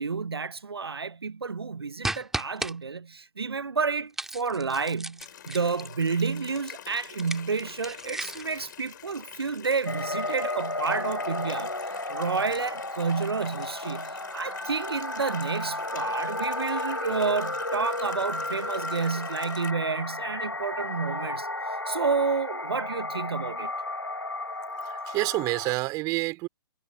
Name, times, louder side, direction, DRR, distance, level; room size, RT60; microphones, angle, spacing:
voice 1, 0.0-11.7 12.1-21.5 21.9-23.7, right 5 dB, 80° right, 0.7 m, -30 dB
sound 1, 2.0-2.7 4.1-6.0 7.1-8.6, right 2 dB, 5° right, 1.8 m, -35 dB
Water tap faucet, 5.2-19.7, left 10 dB, 55° left, 4.7 m, -46 dB
sound 2, 9.9-25.7, left 2 dB, 90° left, 4.8 m, -33 dB
voice 2, 24.8-26.5, right 22 dB, 30° right, 4.4 m, -28 dB
figure-of-eight pair, 120°, 13 cm